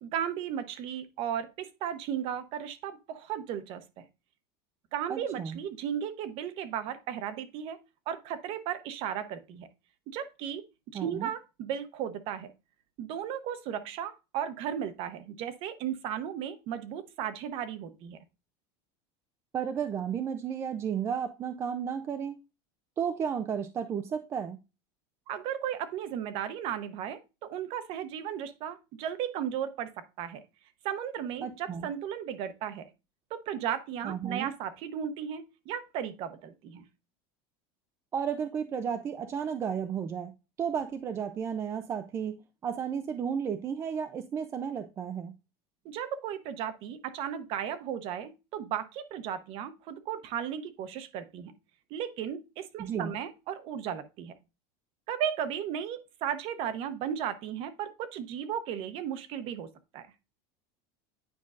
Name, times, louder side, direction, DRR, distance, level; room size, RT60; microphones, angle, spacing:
voice 1, 0.0-4.0 4.9-7.8 8.1-9.7 10.1-10.6 11.0-12.5 13.0-18.2 25.3-29.9 30.2-30.4 30.8-32.9 33.3-36.8 45.8-51.5 51.9-54.3 55.1-60.1, right 9 dB, 45° right, 0.8 m, -35 dB
voice 2, 5.1-5.6 10.9-11.3 19.5-22.4 23.0-24.6 31.4-31.9 34.0-34.5 38.1-40.3 40.6-42.4 42.6-45.3 52.8-53.2, right 7 dB, 20° right, 0.3 m, -33 dB
9.5 x 5.3 x 2.4 m
cardioid pair, 165°, 13 cm